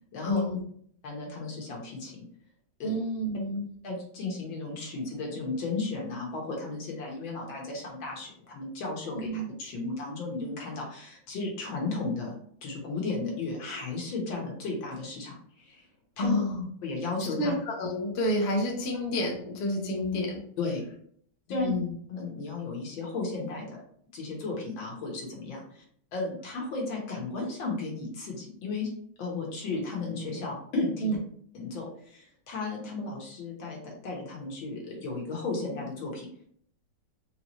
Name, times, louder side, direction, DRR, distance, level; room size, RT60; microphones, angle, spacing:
voice 1, 0.2-0.6 2.8-3.6 9.2-9.5 16.2-16.6 17.4-20.4 21.5-21.9 31.0-31.1, left 1 dB, 50° left, 0 dB, 0.8 m, -29 dB
voice 2, 1.0-2.2 2.8-3.0 3.8-12.4 12.6-15.9 16.2-16.3 16.8-17.5 20.6-20.8 21.5-21.7 22.1-23.8 24.1-25.8 26.1-28.9 29.2-31.2 31.5-36.3, left 3 dB, 70° left, -1 dB, 1.9 m, -34 dB
4.7 x 2.9 x 3.0 m, 0.62 s
omnidirectional pair, 2.3 m